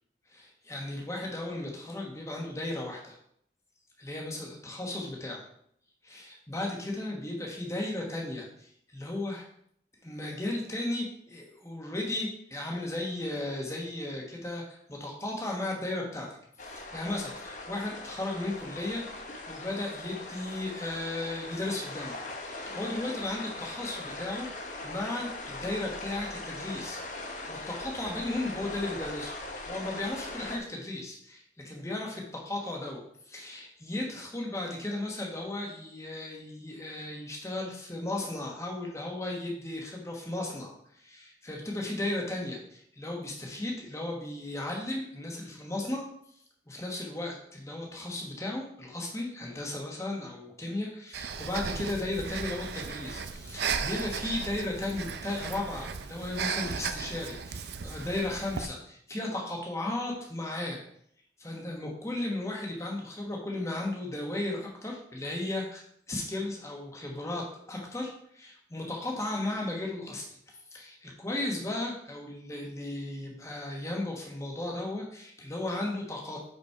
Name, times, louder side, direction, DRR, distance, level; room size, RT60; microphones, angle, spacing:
voice 1, 0.3-3.2 4.0-5.4 6.0-9.5 10.0-16.3 16.6-24.5 24.8-27.0 27.5-29.3 29.6-46.0 46.7-60.8 61.4-76.4, left 2 dB, 15° left, -1 dB, 1.2 m, -35 dB
sound 1, 16.6-30.6, left 2 dB, 45° left, 1.0 m, -40 dB
Breathing, 51.1-58.6, right 6 dB, 70° right, 0.5 m, -36 dB
5.4 x 5.1 x 4.7 m, 0.67 s
head